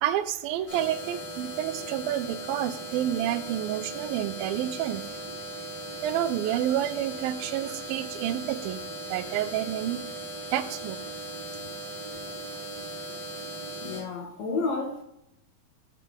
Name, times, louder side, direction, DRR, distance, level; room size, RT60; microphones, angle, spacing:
voice 1, 0.0-5.0 6.0-8.8 9.1-10.0 10.5-11.0, right 12 dB, 90° right, 12 dB, 2.4 m, -29 dB
sound 1, 0.7-14.0, right 1 dB, 10° left, 3.3 m, -38 dB
voice 2, 13.8-15.0, left 4 dB, 65° left, 3 dB, 1.9 m, -31 dB
13.0 x 5.6 x 3.6 m, 0.79 s
omnidirectional pair, 4.1 m